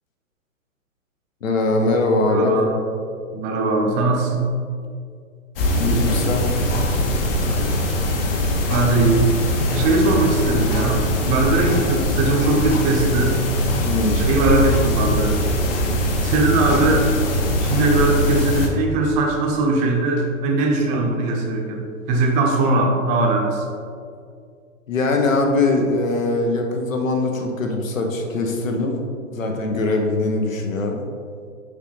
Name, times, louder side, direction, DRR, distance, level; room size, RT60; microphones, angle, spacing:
voice 1, 1.4-2.6 5.8-6.5 13.8-14.2 24.9-29.0 29.3-31.0, left 2 dB, 75° left, 3 dB, 1.1 m, -21 dB
voice 2, 2.2-2.7 3.3-4.4 8.7-9.3 9.7-13.4 14.1-15.3 16.2-17.2 17.6-21.8 22.1-23.7, right 2 dB, 20° right, 1 dB, 0.7 m, -20 dB
sound 1, 5.6-18.7, left 1 dB, 45° left, 1.0 m, -21 dB
6.5 x 5.2 x 3.1 m, 2.2 s
hypercardioid pair, 125°, 40 cm